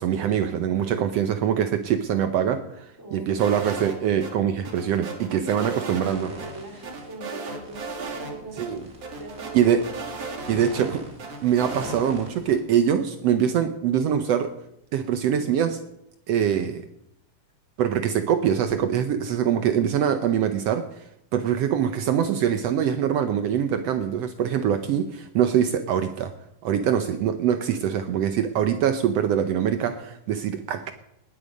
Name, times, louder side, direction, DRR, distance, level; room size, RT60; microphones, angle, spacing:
voice 1, 0.0-6.3 8.6-8.8 9.5-9.8 10.5-11.0 11.4-14.5 14.9-15.8 16.3-16.8 17.8-26.3 26.6-30.9, right 9 dB, 85° right, 9 dB, 1.4 m, -23 dB
voice 2, 3.0-3.6 5.3-9.8 10.2-10.3 10.5-10.8, right 2 dB, 5° right, 2 dB, 2.6 m, -41 dB
sound 1, 3.4-4.3 4.7-6.1 6.4-6.5 6.8-8.3 8.6-8.7 9.0-10.9 11.2-12.0, right 4 dB, 50° right, 3.2 m, -35 dB
sound 2, 6.0-7.2 7.6-12.6, equal, 25° right, 2.5 m, -43 dB
19.5 x 12.0 x 5.3 m, 0.79 s
omnidirectional pair, 3.9 m